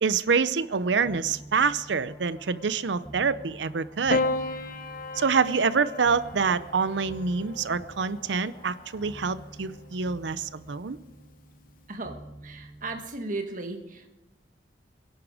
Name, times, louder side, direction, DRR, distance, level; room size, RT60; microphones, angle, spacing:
voice 1, 0.0-4.2 5.2-11.0, right 5 dB, 90° right, 15 dB, 0.6 m, -26 dB
sound 1, 0.8-11.1, right 1 dB, 20° left, 3.0 m, -56 dB
sound 2, 1.0-13.1, right 1 dB, 5° right, 0.7 m, -48 dB
Piano, 4.1-8.6 9.8-10.4, left 2 dB, 50° left, 0.9 m, -33 dB
voice 2, 12.4-14.1, right 2 dB, 45° right, 4 dB, 1.5 m, -35 dB
22.5 x 11.0 x 4.9 m, 1.0 s
head